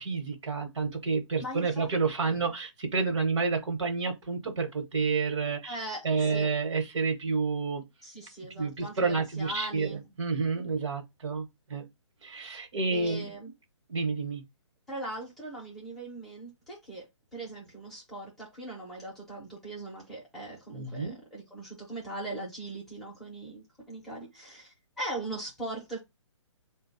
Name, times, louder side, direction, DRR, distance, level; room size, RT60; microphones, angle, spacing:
voice 1, 0.0-5.7 6.0-7.8 8.6-11.9 12.2-13.3 13.9-14.4 20.7-21.2, right 4 dB, 75° right, 1.1 m, -29 dB
voice 2, 1.4-1.9 2.2-2.5 5.7-6.5 8.0-10.0 12.9-13.5 14.9-17.1 17.3-26.0, right 2 dB, ahead, 0.6 m, -40 dB
4.1 x 2.2 x 4.0 m
hypercardioid pair, 175°, 16 cm